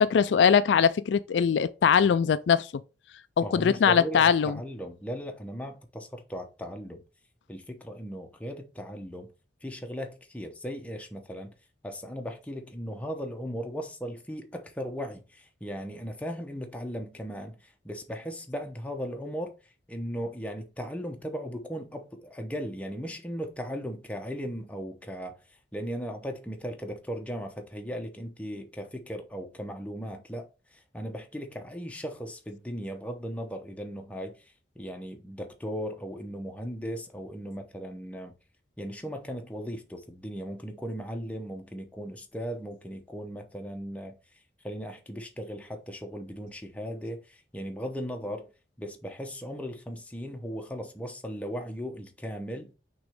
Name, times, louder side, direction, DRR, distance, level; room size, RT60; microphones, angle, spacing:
voice 1, 0.0-2.8 3.4-4.6, left 7 dB, 70° left, 0.3 m, -22 dB
voice 2, 3.4-7.0 7.5-9.3 9.6-11.5 11.8-38.3 38.8-44.2 44.6-48.5 48.8-52.7, equal, 5° left, 0.8 m, -37 dB
6.0 x 3.1 x 5.0 m
head